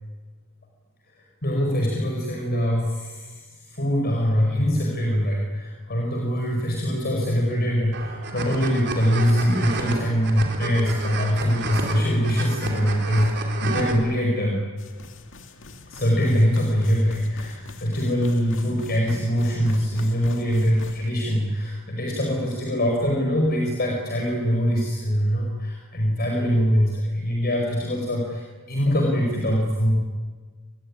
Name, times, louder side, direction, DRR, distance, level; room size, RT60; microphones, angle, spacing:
voice 1, 1.4-14.6 15.8-30.0, equal, 45° left, 0 dB, 5.3 m, -23 dB
sound 1, 7.9-13.9, right 3 dB, 55° right, 4.1 m, -31 dB
sound 2, 14.8-21.1, left 3 dB, 60° left, 2.3 m, -43 dB
28.5 x 20.0 x 10.0 m, 1.4 s
head